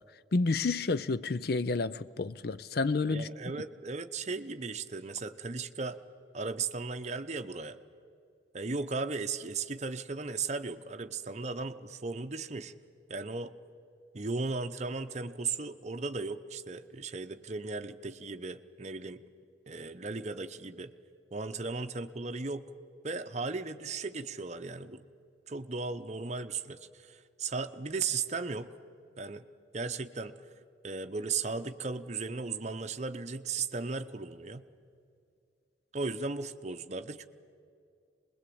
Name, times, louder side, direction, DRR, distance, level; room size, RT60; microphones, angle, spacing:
voice 1, 0.3-3.3, left 3 dB, 55° left, 0.5 m, -30 dB
voice 2, 3.1-6.0 6.3-7.8 8.5-12.7 13.1-13.5 14.1-19.2 19.7-20.9 21.3-22.6 23.0-25.0 25.5-28.7 29.2-29.4 29.7-30.3 30.8-34.6 35.9-37.3, right 4 dB, 35° right, 0.8 m, -36 dB
24.0 x 21.0 x 8.6 m
head